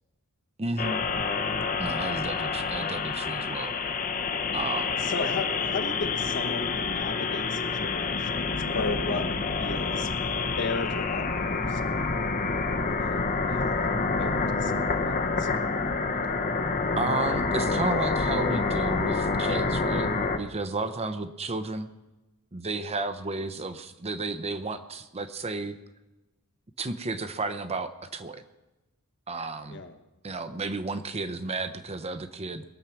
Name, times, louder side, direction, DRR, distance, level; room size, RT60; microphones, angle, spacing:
voice 1, 0.6-1.0 1.8-3.7 4.5-5.0 17.0-20.1 20.4-21.9 22.5-25.7 26.8-28.4 29.3-29.8 30.2-32.6, right 3 dB, 30° right, 10 dB, 0.7 m, -32 dB
sound 1, 0.8-20.4, left 4 dB, 40° left, 0.9 m, -28 dB
voice 2, 5.0-9.3 9.6-10.1 10.6-11.9 12.8-15.5 29.7-29.9, left 3 dB, 55° left, 7 dB, 1.2 m, -35 dB
22.0 x 7.3 x 5.9 m, 1.1 s
head